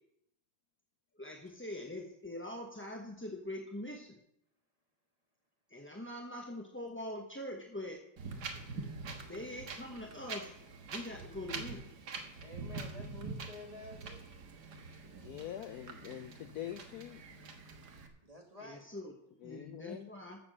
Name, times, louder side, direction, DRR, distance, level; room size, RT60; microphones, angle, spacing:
voice 1, 1.2-4.2 5.7-8.0 9.3-10.5 10.9-11.9 18.6-20.4, left 1 dB, 10° left, 1 dB, 0.7 m, -43 dB
Wind, 8.2-18.1, right 4 dB, 55° right, 1.9 m, -45 dB
voice 2, 12.4-14.3 18.2-18.9, left 1 dB, 20° right, 2 dB, 1.9 m, -50 dB
voice 3, 15.2-17.2 19.4-20.1, left 11 dB, 75° left, 11 dB, 0.9 m, -44 dB
14.0 x 6.9 x 6.6 m, 0.76 s
omnidirectional pair, 2.2 m